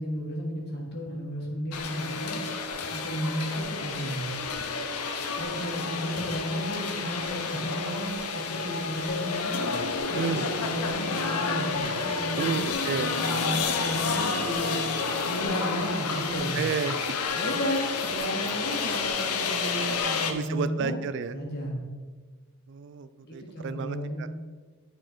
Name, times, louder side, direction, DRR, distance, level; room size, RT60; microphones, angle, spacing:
voice 1, 0.0-2.4 2.9-4.3 5.3-9.5 10.1-12.6 13.0-14.8 15.3-16.6 17.3-21.0 21.3-21.8 23.2-24.3, equal, 45° left, -1 dB, 1.6 m, -33 dB
sound 1, 1.7-20.3, left 4 dB, 85° left, 0.8 m, -30 dB
voice 2, 10.0-10.5 12.4-13.1 16.5-16.9 20.3-21.4 22.7-24.3, right 6 dB, 55° right, 13 dB, 0.3 m, -31 dB
9.7 x 4.5 x 4.4 m, 1.4 s
head